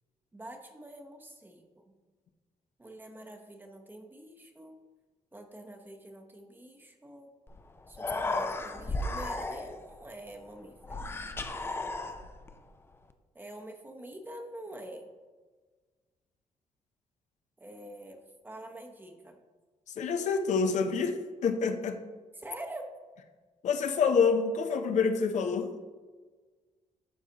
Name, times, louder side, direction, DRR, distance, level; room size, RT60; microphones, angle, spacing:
voice 1, 0.3-1.9 2.8-4.8 5.3-7.3 7.9-11.1 13.3-15.1 17.6-19.4 22.4-22.9, right 1 dB, 15° right, 4 dB, 0.8 m, -46 dB
Human voice, 7.5-7.6 7.9-9.9 10.8-12.5, left 2 dB, 20° left, 0.4 m, -34 dB
voice 2, 19.9-22.0 23.6-25.7, left 5 dB, 70° left, 7 dB, 0.6 m, -27 dB
12.0 x 4.0 x 2.8 m, 1.4 s
cardioid pair, 110°, 13 cm